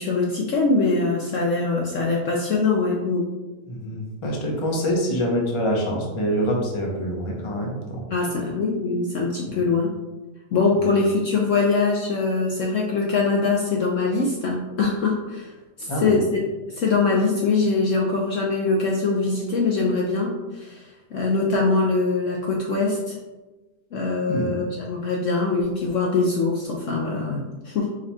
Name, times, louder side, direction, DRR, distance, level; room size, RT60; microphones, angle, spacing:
voice 1, 0.0-3.3 8.1-9.9 10.5-15.5 15.8-16.2 16.7-23.2 23.9-27.4 27.6-27.9, left 3 dB, 70° left, -2 dB, 0.7 m, -23 dB
voice 2, 3.7-8.0 8.3-8.4 9.4-9.6 10.9-11.0 15.8-16.1 24.3-24.5, equal, 45° left, -1 dB, 0.3 m, -25 dB
4.8 x 2.2 x 4.1 m, 1.1 s
omnidirectional pair, 1.8 m